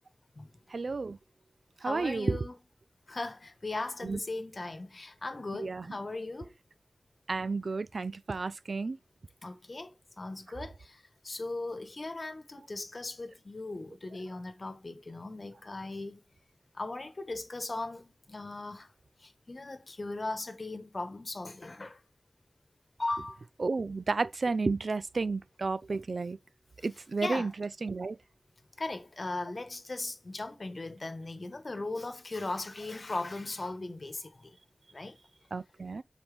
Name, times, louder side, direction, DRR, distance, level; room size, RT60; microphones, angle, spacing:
voice 1, 0.7-1.2 1.8-2.4 4.0-4.2 5.5-5.9 7.3-9.0 23.6-26.4 26.8-28.2 35.5-36.0, right 3 dB, 70° right, 0.3 m, -32 dB
voice 2, 1.8-2.5 3.1-6.5 9.4-9.9 10.2-16.2 16.7-18.9 19.2-22.0 23.0-23.4 27.2-27.5 28.8-34.5 34.9-35.2, left 2 dB, 50° left, 1.1 m, -38 dB
7.1 x 4.4 x 3.3 m
wide cardioid pair, 80°, 0 cm